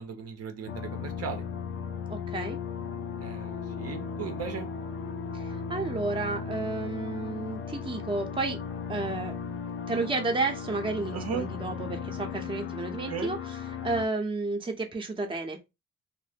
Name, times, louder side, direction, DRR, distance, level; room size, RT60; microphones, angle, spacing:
voice 1, 0.0-1.4 3.2-4.7 11.1-11.5 13.1-13.3, right 7 dB, 55° right, 0.7 m, -36 dB
sound 1, 0.7-14.1, left 6 dB, 45° left, 0.5 m, -36 dB
voice 2, 2.1-2.6 5.3-8.6 8.9-9.4 9.9-15.6, right 3 dB, 15° right, 0.6 m, -32 dB
2.7 x 2.0 x 3.4 m
cardioid pair, 90°, 30 cm